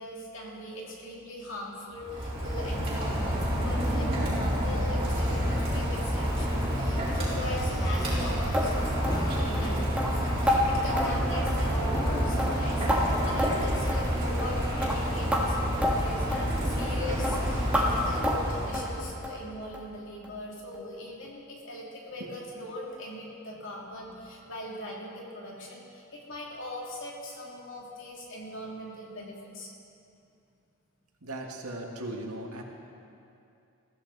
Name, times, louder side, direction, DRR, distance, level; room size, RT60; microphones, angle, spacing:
voice 1, 0.0-29.7, left 1 dB, 60° left, -3 dB, 3.0 m, -40 dB
Rain, 1.9-19.2, equal, 25° right, 4.3 m, -29 dB
sound 1, 4.6-15.9, equal, 15° left, 1.1 m, -41 dB
sound 2, 8.5-8.7 9.0-9.2 9.5-9.7 10.0-10.1 10.5-10.6 11.0-11.1 11.5-11.7 12.0-12.1 12.4-13.0 13.4-13.6 13.9-14.0 14.4-14.5 14.8-15.0 15.3-15.4 15.8-15.9 16.3-16.5 16.8-17.0 17.2-17.4 17.7-17.9 18.2-18.4 18.7-18.9 19.2-19.4 19.7-19.9 20.2-20.3 20.7-20.8, equal, 5° right, 1.7 m, -28 dB
voice 2, 31.2-32.6, right 1 dB, 90° right, 1 dB, 2.0 m, -37 dB
21.5 x 15.0 x 4.1 m, 2.6 s
head